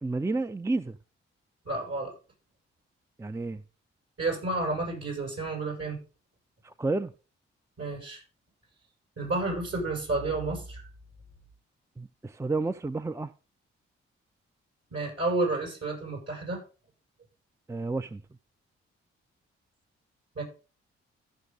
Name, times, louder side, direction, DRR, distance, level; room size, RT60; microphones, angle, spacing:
voice 1, 0.0-1.0 3.2-3.6 6.6-7.1 12.0-13.3 17.7-18.2, right 3 dB, 10° right, 0.5 m, -31 dB
voice 2, 1.7-2.1 4.2-6.0 7.8-8.2 9.2-10.8 14.9-16.6 20.4-20.5, right 2 dB, 55° right, 7.3 m, -30 dB
15.0 x 6.3 x 4.0 m
hypercardioid pair, 40°, 29 cm